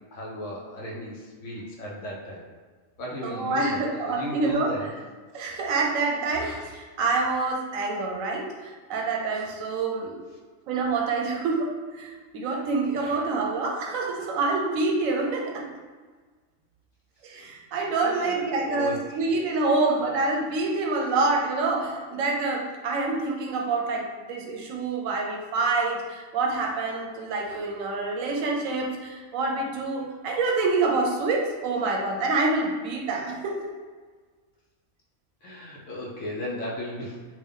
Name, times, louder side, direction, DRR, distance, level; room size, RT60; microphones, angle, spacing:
voice 1, 0.1-2.5 3.0-4.9 17.3-17.4 18.0-19.2 35.4-37.3, left 1 dB, 70° left, -4 dB, 1.0 m, -35 dB
voice 2, 3.2-4.7 5.3-10.2 10.7-15.6 17.2-33.7, right 3 dB, 90° right, -1 dB, 1.0 m, -27 dB
3.4 x 2.5 x 3.6 m, 1.5 s
omnidirectional pair, 1.3 m